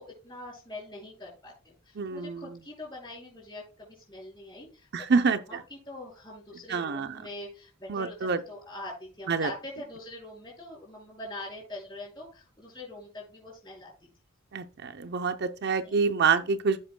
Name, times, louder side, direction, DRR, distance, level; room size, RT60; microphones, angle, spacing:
voice 1, 0.0-13.9 15.8-16.0, left 1 dB, 20° left, 4.8 m, -43 dB
voice 2, 2.0-2.6 4.9-5.6 6.7-7.2 7.9-8.4 9.3-9.5 14.5-16.8, right 5 dB, 55° right, 0.6 m, -27 dB
15.0 x 5.5 x 2.2 m
head